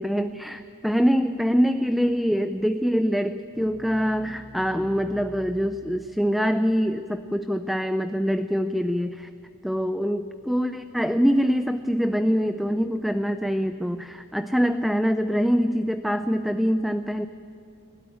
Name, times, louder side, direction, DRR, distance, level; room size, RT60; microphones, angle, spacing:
voice 1, 0.0-9.3 9.6-17.3, equal, ahead, 9 dB, 0.4 m, -24 dB
sound 1, 3.5-6.3, left 1 dB, 70° right, 7.4 m, -46 dB
30.0 x 13.0 x 9.0 m, 2.7 s
head